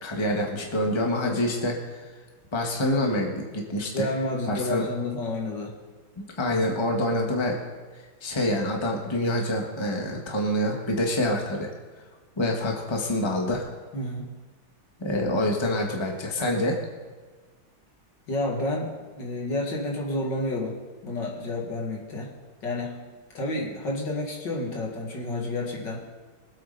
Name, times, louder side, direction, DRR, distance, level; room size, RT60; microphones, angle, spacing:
voice 1, 0.0-1.8 2.5-4.1 4.5-4.8 6.2-7.5 8.2-11.7 12.4-13.6 15.0-16.8, left 1 dB, 15° left, 1 dB, 1.5 m, -26 dB
voice 2, 3.9-5.7 13.9-14.3 18.3-20.8 21.0-22.3 22.6-23.0 23.3-26.0, left 2 dB, 60° left, -1 dB, 2.7 m, -30 dB
23.0 x 8.6 x 4.1 m, 1.4 s
omnidirectional pair, 2.2 m